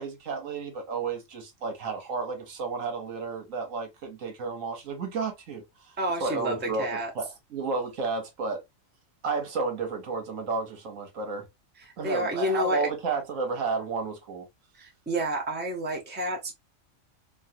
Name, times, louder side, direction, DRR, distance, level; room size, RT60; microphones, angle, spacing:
voice 1, 0.0-5.9 6.2-8.6 9.2-11.5 12.0-14.5, right 4 dB, 75° right, 1.3 m, -32 dB
voice 2, 6.0-7.1 11.8-12.9 14.8-16.5, equal, 10° right, 0.8 m, -30 dB
3.2 x 2.6 x 2.6 m
omnidirectional pair, 1.4 m